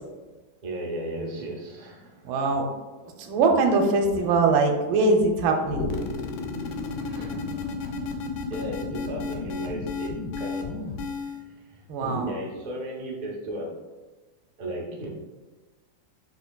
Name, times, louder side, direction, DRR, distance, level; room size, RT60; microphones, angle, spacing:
voice 1, 0.6-2.3 5.6-5.8 6.5-13.7 14.6-15.1, right 1 dB, 60° right, -1 dB, 0.4 m, -36 dB
voice 2, 2.3-2.6 3.2-5.9 11.9-12.3, right 3 dB, 90° right, 3 dB, 1.5 m, -22 dB
sound 1, 5.6-11.4, left 4 dB, 80° left, 1.3 m, -32 dB
5.0 x 4.8 x 2.2 m, 1.2 s
omnidirectional pair, 2.1 m